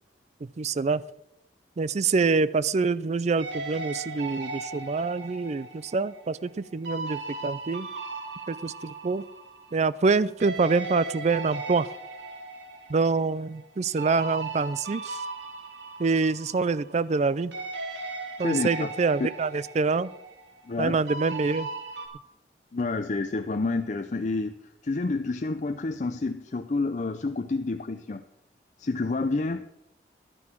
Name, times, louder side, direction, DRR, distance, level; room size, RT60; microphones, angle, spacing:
voice 1, 0.4-1.0 1.8-7.9 8.5-9.3 9.7-11.9 12.9-15.2 16.0-17.5 18.4-20.1 20.8-21.7, right 4 dB, 40° right, 18 dB, 0.4 m, -26 dB
sound 1, 3.4-10.1 10.4-17.2 17.5-22.1, right 3 dB, 90° right, 2.5 m, -38 dB
voice 2, 18.4-18.9 20.7-21.0 22.7-24.5 24.8-28.2 28.8-29.7, left 3 dB, 45° left, 7 dB, 0.5 m, -29 dB
11.5 x 9.7 x 5.9 m, 0.84 s
head